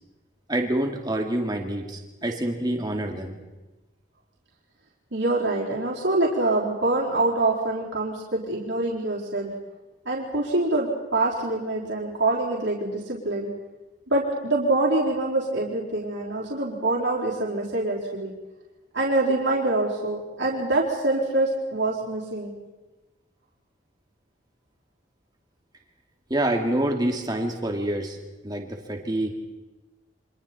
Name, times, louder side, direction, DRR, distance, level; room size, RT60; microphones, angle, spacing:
voice 1, 0.5-3.4 26.3-28.2 28.4-29.3, right 1 dB, 20° right, 3 dB, 2.5 m, -27 dB
voice 2, 5.1-9.5 10.1-13.5 14.1-18.3 18.9-22.5, right 2 dB, 70° right, -4 dB, 4.3 m, -25 dB
29.5 x 25.0 x 4.3 m, 1.1 s
head